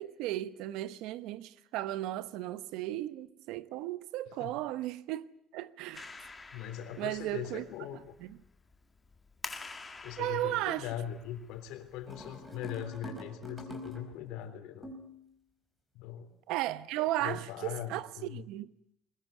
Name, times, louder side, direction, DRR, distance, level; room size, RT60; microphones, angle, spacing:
voice 1, 0.0-5.3 5.5-6.1 7.0-7.6 10.2-10.9 16.5-18.7, right 15 dB, 80° right, 1.1 m, -35 dB
Clapping, 5.9-12.6, left 3 dB, 15° left, 1.9 m, -49 dB
voice 2, 6.5-8.1 10.0-14.9 15.9-16.3 17.2-18.5, left 10 dB, 85° left, 3.7 m, -41 dB
sound 1, 12.1-14.3 14.8-15.2, equal, 5° right, 4.6 m, -45 dB
21.5 x 20.5 x 9.5 m
cardioid pair, 160°, 0 cm